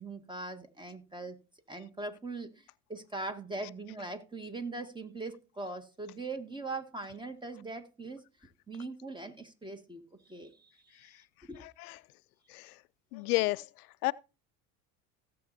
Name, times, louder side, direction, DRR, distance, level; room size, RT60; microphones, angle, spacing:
voice 1, 0.0-1.4 1.7-8.2 8.7-10.0 10.3-11.0 11.5-11.6, right 3 dB, 10° right, 1.8 m, -41 dB
voice 2, 11.6-12.0 12.5-12.8 13.1-14.1, left 21 dB, 75° left, 0.6 m, -32 dB
16.5 x 7.7 x 2.7 m
hypercardioid pair, 85°, 45 cm